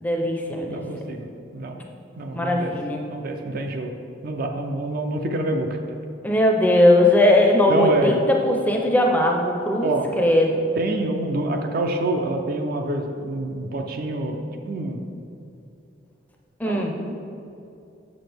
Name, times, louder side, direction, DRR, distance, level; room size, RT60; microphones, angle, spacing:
voice 1, 0.0-0.8 2.3-3.0 6.2-9.9 10.2-10.7 16.6-16.9, left 1 dB, 10° left, 1 dB, 0.5 m, -19 dB
voice 2, 0.7-1.3 1.5-1.8 2.2-2.7 3.1-3.9 4.2-5.8 7.7-8.2 9.8-10.1 10.8-15.0 16.6-17.1, right 2 dB, 50° right, 4 dB, 0.5 m, -27 dB
6.7 x 6.0 x 3.4 m, 2.7 s
head